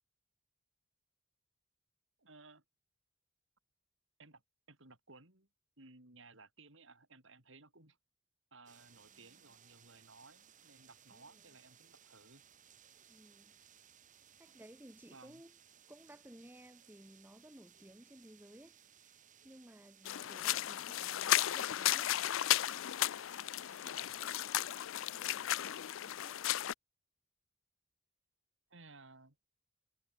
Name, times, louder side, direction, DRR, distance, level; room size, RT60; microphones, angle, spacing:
voice 1, 2.2-2.6 4.2-4.4 4.7-5.5 5.8-8.0 8.5-12.4 15.1-15.4 24.0-24.4 28.7-29.4, right 3 dB, 60° right, 4.2 m, -59 dB
sound 1, 8.7-24.2, right 9 dB, 40° right, 3.2 m, -63 dB
voice 2, 13.1-13.6 14.4-15.5 15.9-22.2 25.1-26.4, right 1 dB, 10° right, 1.4 m, -58 dB
sound 2, 20.1-26.7, left 13 dB, 70° left, 0.4 m, -34 dB
head